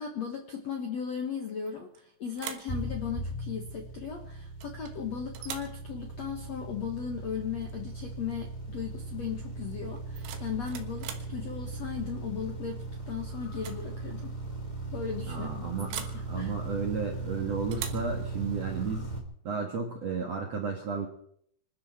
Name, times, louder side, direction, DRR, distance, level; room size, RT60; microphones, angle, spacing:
voice 1, 0.0-14.3 14.9-15.6 15.9-16.5, left 7 dB, 65° left, 3 dB, 1.7 m, -37 dB
sound 1, 1.7-2.0 2.3-2.8 4.6-5.0 5.3-5.8 7.6-7.8 8.1-8.5 9.9-11.3 12.8-13.1 13.5-13.9 14.1-14.2 15.9-16.2 17.7-18.1, right 9 dB, 85° right, 4.0 m, -41 dB
sound 2, 2.7-19.2, right 2 dB, 35° left, 0.7 m, -38 dB
voice 2, 15.3-15.9 16.3-19.1 19.4-21.1, right 5 dB, 60° right, 1 dB, 1.8 m, -33 dB
26.0 x 12.0 x 4.4 m, 0.66 s
omnidirectional pair, 5.4 m